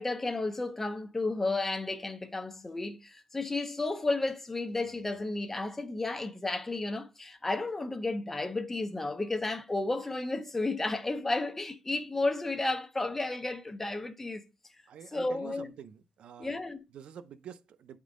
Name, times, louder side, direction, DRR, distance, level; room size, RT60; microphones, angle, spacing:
voice 1, 0.0-14.4 15.1-15.7 16.4-16.8, left 2 dB, 15° left, 0.7 m, -32 dB
voice 2, 14.9-16.6 16.9-18.0, right 8 dB, 65° right, 0.6 m, -47 dB
8.9 x 3.7 x 3.6 m
cardioid pair, 130°, 2 cm